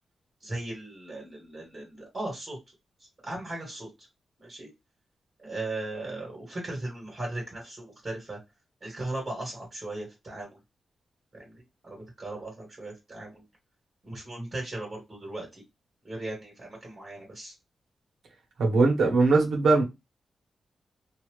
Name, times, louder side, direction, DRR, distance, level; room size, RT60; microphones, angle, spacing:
voice 1, 0.4-2.6 3.2-4.1 4.4-4.7 5.4-8.4 8.8-10.6 11.3-13.4 14.0-15.6 16.0-17.5, right 2 dB, 35° right, 1.6 m, -37 dB
voice 2, 18.6-19.8, right 3 dB, 80° right, 1.2 m, -21 dB
2.8 x 2.5 x 3.1 m
wide cardioid pair, 155°, 0 cm